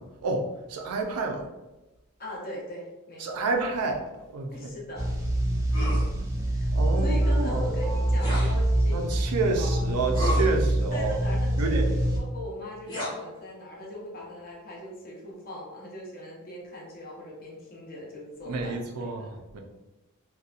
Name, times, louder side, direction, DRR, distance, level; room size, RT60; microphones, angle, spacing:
voice 1, 0.0-1.5 3.2-4.0 4.3-4.8 6.7-7.7 8.9-11.2 11.6-11.9 18.4-19.6, right 3 dB, 90° right, 3 dB, 0.4 m, -29 dB
voice 2, 2.2-3.5 4.5-5.1 5.8-5.9 6.4-6.8 7.0-9.1 9.6-9.8 10.6-19.4, left 1 dB, 45° left, -3 dB, 0.7 m, -40 dB
sound 1, 5.0-12.2, right 1 dB, 15° right, 0.4 m, -25 dB
sound 2, 5.7-6.1 8.2-8.6 10.1-10.5 12.9-13.1, left 1 dB, 20° left, 0.9 m, -31 dB
sound 3, 6.7-9.8, equal, 85° left, 1.0 m, -42 dB
2.7 x 2.2 x 2.4 m, 1.1 s
head